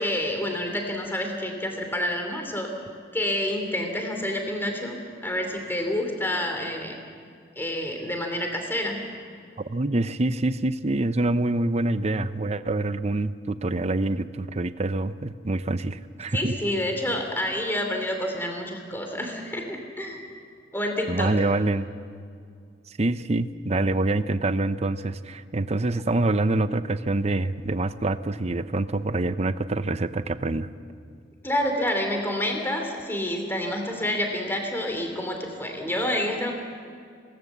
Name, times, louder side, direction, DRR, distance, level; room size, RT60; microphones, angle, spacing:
voice 1, 0.0-2.7 3.1-7.0 7.6-9.0 16.3-20.2 20.7-21.3 31.4-36.5, left 1 dB, 10° left, 3 dB, 2.9 m, -28 dB
voice 2, 9.7-16.5 21.1-21.9 22.9-30.7, right 2 dB, 35° right, 12 dB, 0.7 m, -26 dB
26.0 x 19.0 x 7.3 m, 2.3 s
head